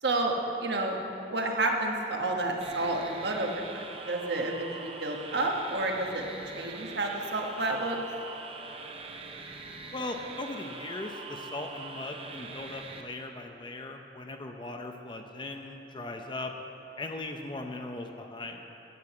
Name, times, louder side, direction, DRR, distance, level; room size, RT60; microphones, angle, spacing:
voice 1, 0.0-6.3 6.5-8.0, right 2 dB, 65° right, 1 dB, 1.3 m, -30 dB
sound 1, 2.6-13.0, right 4 dB, 30° right, 0.7 m, -43 dB
voice 2, 9.9-16.5 17.0-18.6, left 2 dB, 25° left, 4 dB, 0.6 m, -39 dB
11.0 x 7.9 x 7.6 m, 3.0 s
head